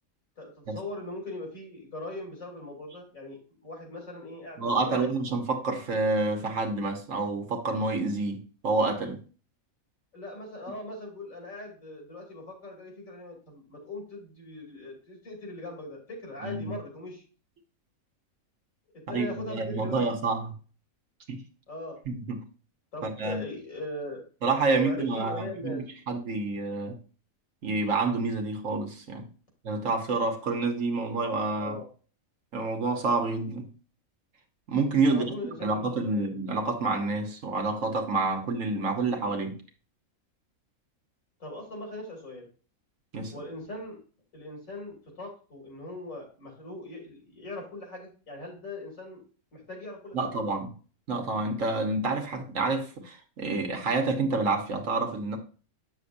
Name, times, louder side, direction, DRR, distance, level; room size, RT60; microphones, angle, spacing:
voice 1, 0.4-5.1 10.1-17.2 18.9-20.1 21.7-22.0 22.9-24.3 24.7-25.8 31.6-31.9 35.1-36.3 41.4-42.5 43.3-44.0 44.3-49.2 49.5-50.2, left 2 dB, 70° left, 3.2 m, -40 dB
voice 2, 4.6-9.2 16.4-16.7 19.1-20.6 21.3-21.4 22.1-22.4 23.0-23.4 24.4-27.0 27.6-29.2 29.6-31.8 32.5-33.7 34.7-35.3 35.6-39.6 43.1-43.3 50.1-50.7 51.1-55.4, right 3 dB, 65° right, 1.4 m, -28 dB
8.2 x 6.9 x 2.6 m
omnidirectional pair, 1.5 m